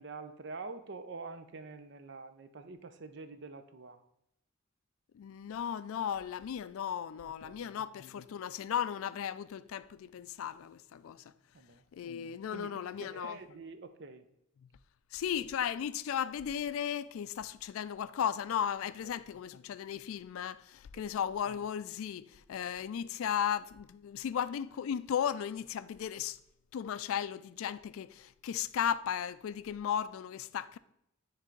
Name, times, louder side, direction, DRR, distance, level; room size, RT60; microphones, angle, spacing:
voice 1, 0.0-4.0 7.4-7.7 11.5-11.8 12.5-14.3 21.0-21.1, right 3 dB, 55° right, 0.5 m, -46 dB
voice 2, 5.1-11.2 11.9-13.4 15.1-26.4 26.7-30.8, left 8 dB, 80° left, 0.3 m, -35 dB
9.9 x 3.4 x 3.8 m
head